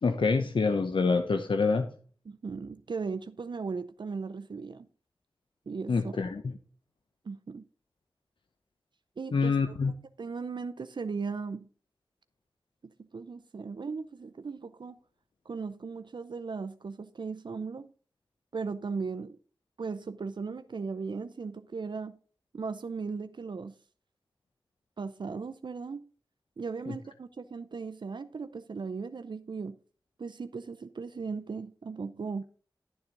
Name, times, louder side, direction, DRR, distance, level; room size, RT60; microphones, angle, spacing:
voice 1, 0.0-1.9 5.9-6.5 9.3-9.9, left 4 dB, 75° left, 0.8 m, -26 dB
voice 2, 2.3-4.9 5.7-6.2 7.2-7.6 9.2-9.6 9.9-11.7 13.1-15.0 15.5-17.9 18.5-19.4 19.8-22.2 22.5-23.7 25.0-26.1 26.6-29.8 30.2-32.4, right 4 dB, 65° right, 0.5 m, -37 dB
12.0 x 7.1 x 3.9 m
wide cardioid pair, 55°, 9 cm